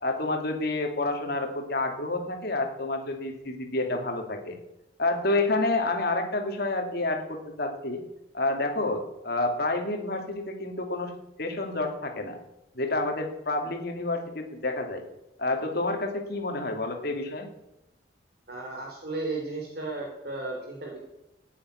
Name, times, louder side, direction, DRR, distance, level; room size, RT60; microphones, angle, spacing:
voice 1, 0.0-4.5 5.0-8.0 8.3-11.1 11.4-12.4 12.7-15.0 15.4-17.5, left 2 dB, 55° left, 3 dB, 2.3 m, -29 dB
voice 2, 18.5-21.0, right 2 dB, 55° right, 0 dB, 3.3 m, -34 dB
14.0 x 8.9 x 9.4 m, 0.93 s
head